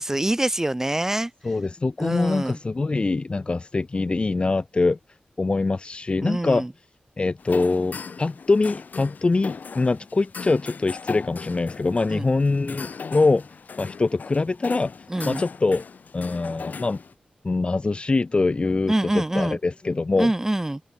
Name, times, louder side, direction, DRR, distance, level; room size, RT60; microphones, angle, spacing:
voice 1, 0.0-1.3 2.0-2.6 6.2-6.7 12.1-12.3 15.1-15.4 18.9-19.6 20.2-20.8, right 1 dB, 15° right, 1.0 m, -25 dB
voice 2, 1.4-5.0 5.4-6.7 7.2-13.4 13.8-15.8 16.1-17.0 17.4-20.3, left 3 dB, 35° left, 0.9 m, -23 dB
sound 1, 7.4-17.1, left 5 dB, 70° left, 8.0 m, -38 dB
wide cardioid pair, 80°, 3 cm